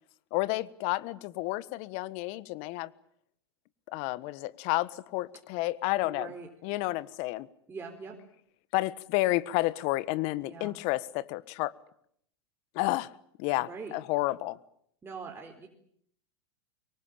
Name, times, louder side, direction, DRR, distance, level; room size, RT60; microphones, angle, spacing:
voice 1, 0.3-2.9 3.9-6.3 6.6-7.5 8.7-11.7 12.7-13.1 13.4-14.6, left 19 dB, 50° left, 1.4 m, -30 dB
voice 2, 6.0-6.5 7.7-8.2 10.4-10.7 13.6-13.9 15.0-15.7, right 4 dB, 15° right, 4.4 m, -42 dB
25.0 x 23.5 x 8.9 m
hypercardioid pair, 110°, 14 cm